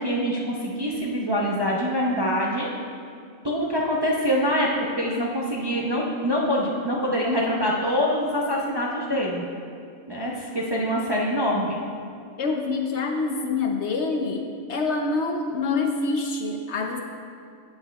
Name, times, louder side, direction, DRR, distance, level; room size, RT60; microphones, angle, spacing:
voice 1, 0.0-2.7 3.4-4.7 5.0-9.4 10.1-11.8, equal, 30° right, -3 dB, 0.5 m, -25 dB
voice 2, 12.4-17.0, left 3 dB, 65° left, 3 dB, 0.8 m, -26 dB
15.5 x 7.0 x 2.3 m, 2.3 s
omnidirectional pair, 1.4 m